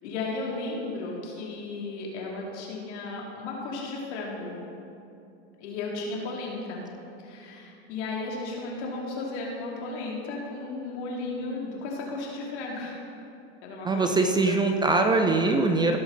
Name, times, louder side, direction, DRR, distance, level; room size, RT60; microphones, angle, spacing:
voice 1, 0.0-4.6 5.6-6.8 7.2-13.0 13.6-14.8, left 3 dB, 75° left, -2 dB, 2.8 m, -34 dB
voice 2, 13.8-16.0, right 3 dB, 15° right, 4 dB, 0.4 m, -22 dB
16.0 x 6.3 x 4.0 m, 2.7 s
supercardioid pair, 125°, 35 cm